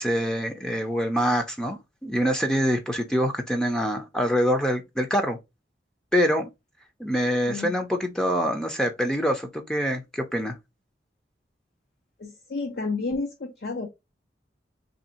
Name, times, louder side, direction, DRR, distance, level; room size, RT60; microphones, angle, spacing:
voice 1, 0.0-5.4 6.1-6.5 7.0-10.6, equal, 5° left, 0.5 m, -25 dB
voice 2, 12.2-13.9, left 3 dB, 60° left, 0.6 m, -31 dB
3.2 x 2.7 x 4.1 m
head